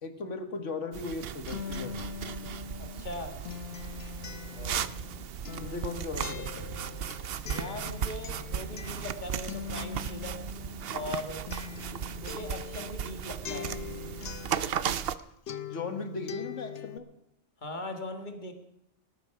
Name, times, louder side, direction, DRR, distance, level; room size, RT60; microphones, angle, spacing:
voice 1, 0.0-2.0 4.5-4.9 5.6-6.8 15.7-17.1, left 3 dB, 80° left, 8 dB, 1.8 m, -37 dB
sound 1, 0.9-15.2, right 8 dB, 60° right, 0.8 m, -36 dB
Acoustic guitar, 1.0-15.2 15.5-17.0, left 8 dB, 55° left, 1.0 m, -42 dB
voice 2, 2.8-3.4 7.5-10.4 10.9-11.5 12.2-13.7 17.6-18.5, left 2 dB, 40° left, 6 dB, 1.9 m, -39 dB
18.5 x 10.5 x 5.8 m, 0.79 s
omnidirectional pair, 1.2 m